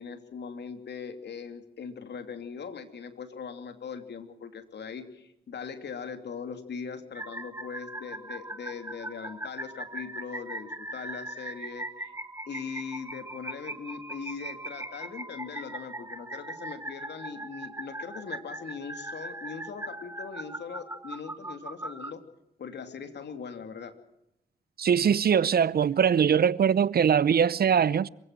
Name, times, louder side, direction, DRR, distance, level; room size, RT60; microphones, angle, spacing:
voice 1, 0.0-12.1 12.5-22.2 22.6-23.9, left 6 dB, 70° left, 2.8 m, -40 dB
sound 1, 7.1-22.1, right 1 dB, 15° right, 2.0 m, -40 dB
voice 2, 24.8-28.1, right 7 dB, 55° right, 0.7 m, -22 dB
26.5 x 16.5 x 7.6 m
supercardioid pair, 40°, 19 cm